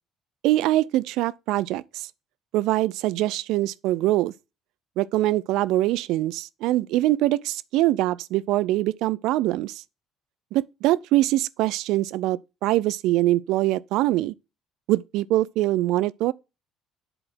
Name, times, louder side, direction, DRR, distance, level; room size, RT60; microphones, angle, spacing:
voice 1, 0.4-2.1 2.5-4.3 5.0-9.8 10.5-14.3 14.9-16.3, right 16 dB, 75° right, 0.4 m, -23 dB
7.8 x 4.0 x 6.1 m
supercardioid pair, 80°, 0 cm